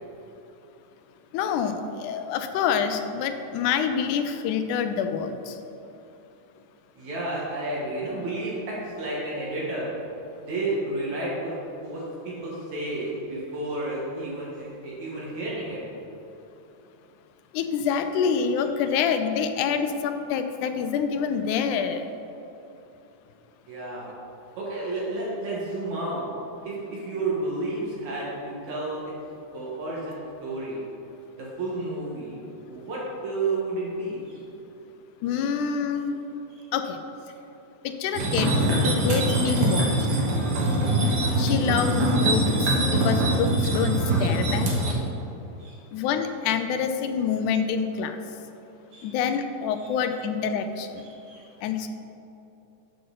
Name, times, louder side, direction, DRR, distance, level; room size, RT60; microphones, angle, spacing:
voice 1, 1.3-5.6 17.5-22.1 35.2-36.1 36.7-37.0 37.8-39.9 41.4-44.7 45.9-48.2 49.0-51.0 51.6-51.9, left 7 dB, 85° left, 8 dB, 2.1 m, -27 dB
voice 2, 7.0-9.9 10.4-11.5 11.8-15.8 23.7-24.1 24.6-26.2 26.6-29.1 29.5-30.8 31.3-34.4 35.4-35.5 36.6-36.7 41.2-41.4 45.6-45.8 48.9-49.1 49.8-49.9 51.2-51.5, right 2 dB, 70° right, -6 dB, 2.8 m, -31 dB
sound 1, 38.1-44.9, right 1 dB, 45° right, 1.4 m, -23 dB
12.0 x 6.4 x 3.9 m, 2.9 s
omnidirectional pair, 3.5 m